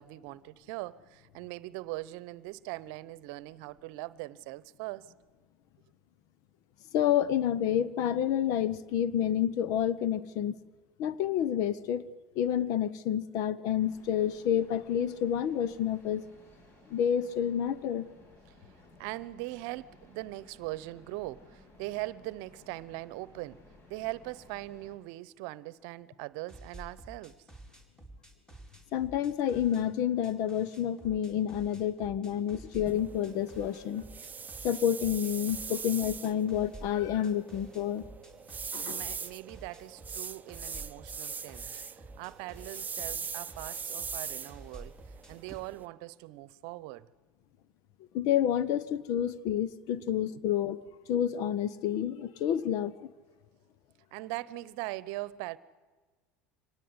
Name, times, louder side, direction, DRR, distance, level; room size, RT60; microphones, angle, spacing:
voice 1, 0.0-5.1 19.0-23.6 23.9-27.4 32.2-32.5 38.8-45.0 45.3-47.1 50.0-50.5 54.1-55.6, right 18 dB, 65° right, 0.9 m, -41 dB
voice 2, 6.9-10.5 11.0-12.1 12.4-16.2 16.9-18.0 28.9-34.0 34.6-38.0 38.7-39.0 48.1-50.8 51.1-52.9, left 10 dB, 60° left, 1.2 m, -29 dB
sound 1, 13.8-25.0, left 1 dB, 40° left, 7.3 m, -58 dB
sound 2, 26.5-29.9 30.2-45.6, right 2 dB, 10° left, 4.5 m, -50 dB
sound 3, 32.9-45.9, right 6 dB, 25° right, 0.7 m, -41 dB
25.0 x 19.0 x 9.7 m
hypercardioid pair, 80°, 7 cm